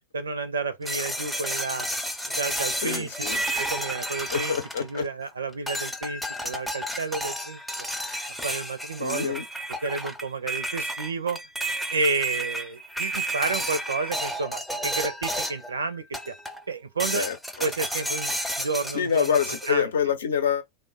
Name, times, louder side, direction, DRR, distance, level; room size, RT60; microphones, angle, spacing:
voice 1, 0.1-1.9 2.4-3.1 3.6-7.6 8.4-9.3 9.8-11.4 11.9-16.3 16.7-17.3 17.6-19.4 19.6-19.9, right 4 dB, 70° right, 0.4 m, -31 dB
sound 1, 0.9-5.2 5.7-15.7 16.1-16.6 17.0-19.7, right 1 dB, ahead, 0.5 m, -31 dB
voice 2, 2.8-3.4 4.3-5.1 9.0-9.4 17.1-17.4 18.9-20.6, left 8 dB, 65° left, 0.6 m, -26 dB
3.2 x 2.0 x 3.8 m
figure-of-eight pair, 90°, 0 cm